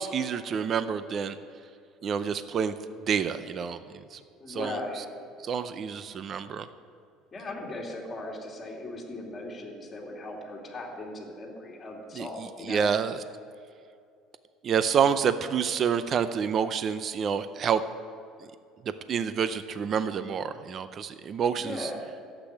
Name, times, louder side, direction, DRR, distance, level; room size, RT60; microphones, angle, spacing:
voice 1, 0.0-1.4 2.0-2.7 3.1-4.2 4.5-4.8 5.4-6.7 12.2-12.3 12.7-13.1 14.6-17.8 19.1-21.9, right 7 dB, 35° right, 12 dB, 0.5 m, -28 dB
voice 2, 4.4-5.0 7.3-12.9 21.6-22.1, left 1 dB, 20° left, -2 dB, 2.7 m, -38 dB
12.0 x 8.2 x 9.7 m, 2.4 s
cardioid pair, 150°, 0 cm